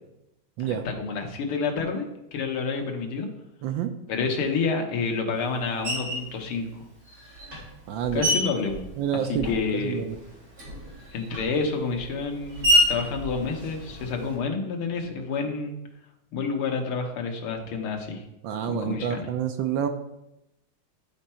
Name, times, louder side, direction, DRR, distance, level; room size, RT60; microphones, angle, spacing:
voice 1, 0.6-3.3 4.1-6.9 8.1-8.8 9.3-10.0 11.1-15.8 16.3-18.2 18.7-19.3, left 4 dB, 85° left, 3 dB, 2.0 m, -29 dB
Screech, 5.8-6.3 7.1-9.8 10.1-14.4, equal, 50° right, 3.8 m, -28 dB
voice 2, 7.9-8.3 9.0-10.2 18.4-19.9, right 9 dB, 70° right, 7 dB, 1.2 m, -28 dB
11.5 x 4.5 x 4.3 m, 0.89 s
omnidirectional pair, 2.3 m